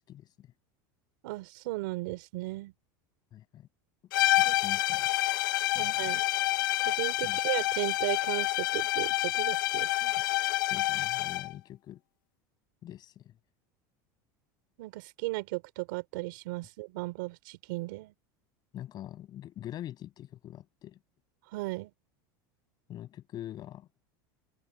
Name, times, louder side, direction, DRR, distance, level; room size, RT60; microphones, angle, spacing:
voice 1, 0.1-0.5 3.3-3.7 4.2-5.1 5.7-6.1 7.2-7.4 10.7-12.0 12.8-13.3 18.7-21.0 22.9-23.9, left 12 dB, 40° left, 6.6 m, -44 dB
voice 2, 1.2-2.7 4.4-4.5 5.7-6.2 6.8-10.1 14.8-18.1 21.5-21.9, right 22 dB, 75° right, 3.2 m, -36 dB
sound 1, 4.1-11.5, left 18 dB, 80° left, 0.7 m, -28 dB
supercardioid pair, 120°, 11 cm